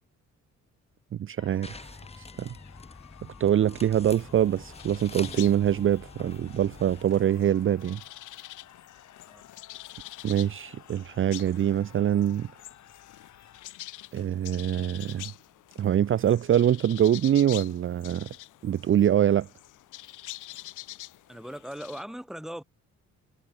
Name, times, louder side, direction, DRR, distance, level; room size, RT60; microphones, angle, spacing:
voice 1, 1.2-1.9 2.2-2.5 3.4-8.0 10.2-12.5 14.1-15.3 15.8-18.3 18.6-19.5, right 10 dB, 45° right, 0.6 m, -24 dB
sound 1, 1.4-13.7, left 10 dB, 65° left, 6.0 m, -54 dB
sound 2, 1.6-7.0, left 3 dB, 20° left, 7.5 m, -45 dB
sound 3, 4.2-22.0, left 16 dB, 85° left, 2.2 m, -46 dB
voice 2, 21.3-22.6, equal, ahead, 1.7 m, -39 dB
cardioid pair, 90°, 30 cm